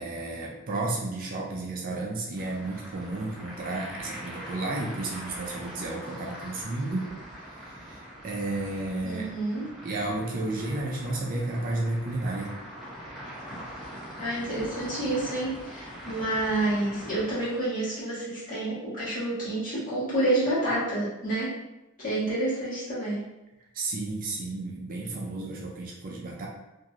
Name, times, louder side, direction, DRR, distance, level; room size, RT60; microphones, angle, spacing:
voice 1, 0.0-7.1 7.5-9.3 9.8-12.5 23.7-26.5, right 2 dB, 40° right, -2 dB, 0.4 m, -32 dB
sound 1, 2.3-17.5, equal, ahead, 0.7 m, -43 dB
voice 2, 9.0-9.7 14.2-21.5 22.0-23.2, right 1 dB, 40° left, -10 dB, 1.5 m, -29 dB
3.0 x 2.6 x 2.4 m, 0.98 s
head